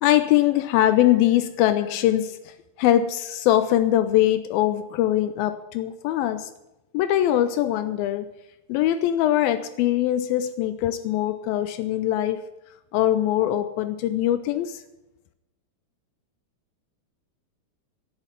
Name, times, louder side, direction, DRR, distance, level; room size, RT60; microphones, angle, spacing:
voice 1, 0.0-6.5 6.9-8.3 8.7-12.5 12.9-14.8, left 12 dB, 80° left, 2.2 m, -22 dB
10.5 x 8.7 x 9.1 m
omnidirectional pair, 4.5 m